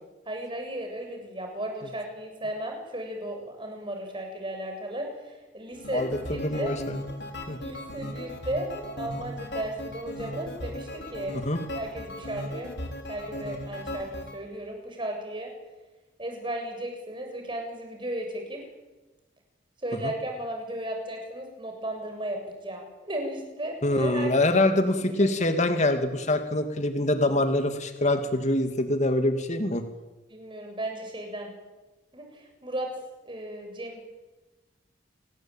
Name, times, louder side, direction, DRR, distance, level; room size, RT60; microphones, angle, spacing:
voice 1, 0.3-6.7 7.6-11.4 11.7-12.7 13.1-15.5 16.2-18.7 19.8-24.3 25.2-25.3 30.3-31.5 32.1-32.9 33.3-34.0, right 1 dB, 25° right, 3 dB, 7.4 m, -35 dB
sound 1, 5.7-14.4, left 1 dB, 65° left, 4.6 m, -37 dB
voice 2, 5.9-7.0 7.5-7.6 11.4-11.6 20.0-20.1 23.8-29.8, left 1 dB, 40° left, 7 dB, 2.6 m, -25 dB
29.0 x 20.0 x 9.1 m, 1.1 s
head